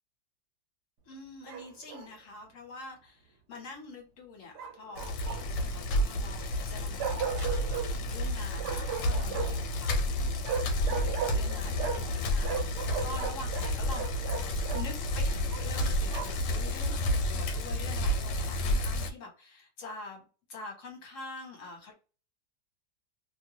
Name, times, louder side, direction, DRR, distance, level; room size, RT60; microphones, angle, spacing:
voice 1, 1.0-10.1 10.8-14.4 14.7-20.2 20.5-21.9, left 3 dB, 50° left, 1 dB, 1.3 m, -46 dB
Bark, 1.5-2.1 4.6-5.7 7.0-7.9 8.6-9.7 10.4-12.2 12.4-14.9 15.5-16.5, right 7 dB, 75° right, 1.2 m, -36 dB
Bicycle, 5.0-19.1, left 1 dB, 85° left, 1.2 m, -30 dB
2.9 x 2.3 x 2.8 m, 0.35 s
omnidirectional pair, 1.8 m